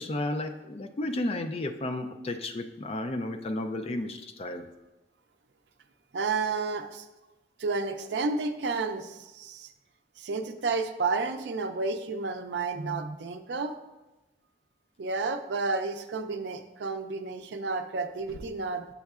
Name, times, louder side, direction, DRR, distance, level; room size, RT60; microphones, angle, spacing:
voice 1, 0.0-4.6, left 1 dB, 35° left, 6 dB, 0.3 m, -33 dB
voice 2, 6.1-7.1 7.6-9.7 10.2-13.8 15.0-18.9, right 4 dB, 80° right, 8 dB, 0.4 m, -31 dB
6.9 x 6.4 x 2.4 m, 1.1 s
head